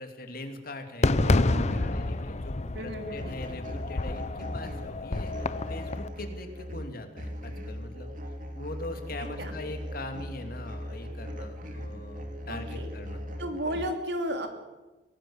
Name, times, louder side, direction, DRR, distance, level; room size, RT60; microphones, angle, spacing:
voice 1, 0.0-8.1 8.5-13.2, left 2 dB, 55° left, 6 dB, 2.7 m, -41 dB
Fireworks, 1.0-6.1, left 2 dB, 40° left, 0.8 m, -29 dB
sound 1, 1.2-2.4 3.2-13.9, equal, 50° right, 2.8 m, -39 dB
voice 2, 2.7-3.4 9.4-9.5 12.5-12.9 13.4-14.5, equal, 75° right, 5 dB, 3.1 m, -33 dB
23.0 x 18.0 x 7.2 m, 1.1 s
head